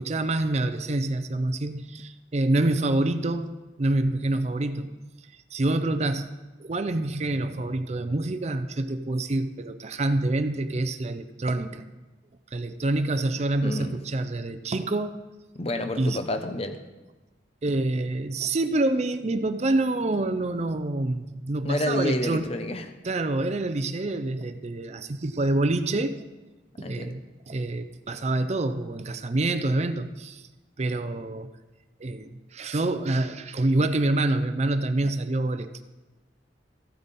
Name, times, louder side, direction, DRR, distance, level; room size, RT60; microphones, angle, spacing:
voice 1, 0.0-4.9 5.3-6.3 6.6-11.8 12.5-15.2 16.0-16.2 17.6-22.5 23.0-26.2 26.8-27.2 27.5-30.5 30.8-31.5 32.0-35.8, right 2 dB, 35° right, 10 dB, 0.5 m, -27 dB
voice 2, 13.6-14.0 15.5-16.8 21.6-22.9 26.8-27.1, left 1 dB, 35° left, 7 dB, 0.8 m, -29 dB
14.5 x 8.7 x 4.1 m, 1.2 s
head